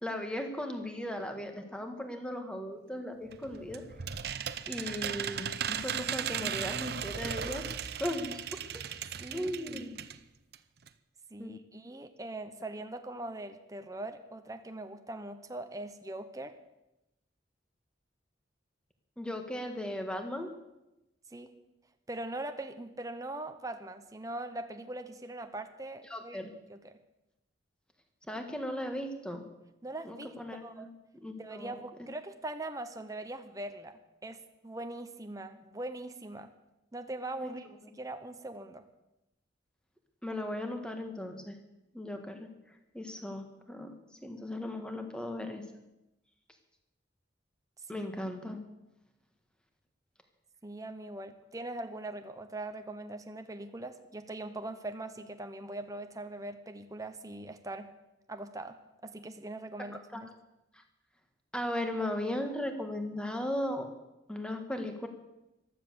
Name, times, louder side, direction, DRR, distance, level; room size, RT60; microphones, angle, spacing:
voice 1, 0.0-3.8 4.7-7.6 8.0-8.4 9.3-9.9 11.4-11.5 19.2-20.5 26.1-26.5 28.3-29.4 30.0-30.9 31.2-31.7 37.4-37.5 40.2-41.6 41.9-42.5 42.9-43.9 44.2-45.6 47.9-48.6 59.8-60.2 61.5-63.9 64.3-65.1, left 1 dB, 5° left, 5 dB, 1.6 m, -37 dB
sound 1, 3.3-10.2 10.5-10.6 10.9-11.0, right 8 dB, 55° right, 0.7 m, -37 dB
voice 2, 9.2-10.0 11.3-16.5 21.3-21.5 22.1-27.0 29.8-30.3 30.6-30.9 31.4-34.4 34.6-36.5 36.9-37.7 37.9-38.8 47.9-48.1 50.6-57.9 58.3-58.8 59.0-60.3, right 2 dB, 20° right, 7 dB, 0.9 m, -41 dB
15.0 x 12.5 x 7.0 m, 0.94 s
head